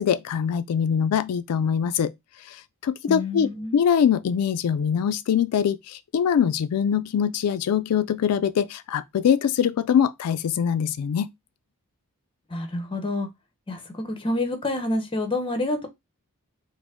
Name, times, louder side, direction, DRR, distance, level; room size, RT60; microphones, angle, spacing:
voice 1, 0.0-2.1 2.5-11.3, left 8 dB, 85° left, 0.3 m, -23 dB
voice 2, 3.1-3.8 12.5-13.3 13.7-15.9, left 2 dB, 25° left, 0.8 m, -28 dB
4.9 x 2.0 x 3.6 m
head